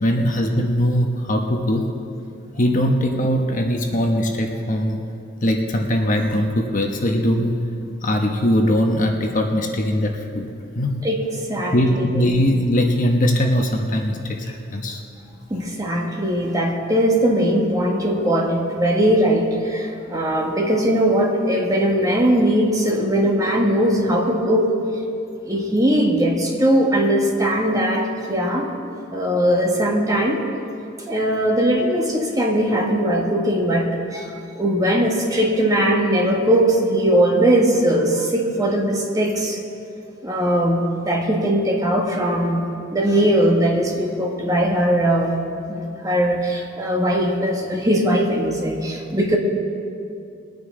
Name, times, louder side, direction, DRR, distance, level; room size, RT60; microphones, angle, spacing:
voice 1, 0.0-1.9 2.6-5.0 5.4-7.5 8.0-10.5 10.7-11.0 11.7-15.0, equal, 40° left, 2 dB, 1.0 m, -20 dB
voice 2, 11.5-12.3 15.5-24.7 25.4-28.7 29.1-30.4 31.1-39.6 40.2-42.6 42.9-45.3 45.7-49.4, right 1 dB, 20° right, 0 dB, 1.4 m, -20 dB
21.5 x 9.2 x 3.8 m, 2.5 s
head